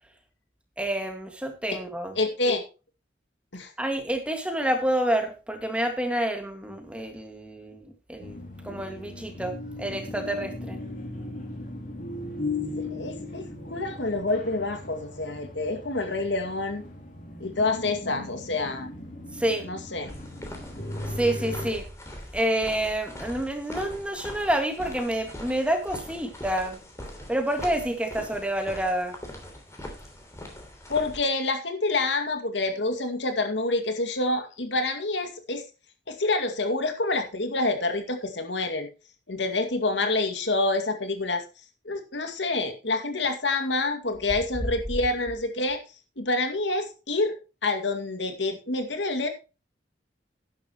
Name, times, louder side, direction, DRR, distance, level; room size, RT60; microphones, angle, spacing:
voice 1, 0.8-2.1 3.8-8.4 8.6-9.5 9.8-10.8 19.4-19.7 21.2-21.8 22.3-26.8 27.3-29.1, right 1 dB, 5° right, 5 dB, 1.9 m, -28 dB
voice 2, 2.2-2.6 3.5-3.7 12.8-16.8 17.4-19.0 19.6-20.1 30.9-35.6 36.1-38.9 39.3-41.4 41.8-45.8 46.2-47.4 47.6-49.3, left 2 dB, 80° left, 7 dB, 2.2 m, -27 dB
sound 1, 8.2-21.7, left 2 dB, 45° left, 3.1 m, -37 dB
sound 2, 20.1-31.2, left 1 dB, 15° left, 3.1 m, -42 dB
12.0 x 10.5 x 3.0 m, 0.32 s
head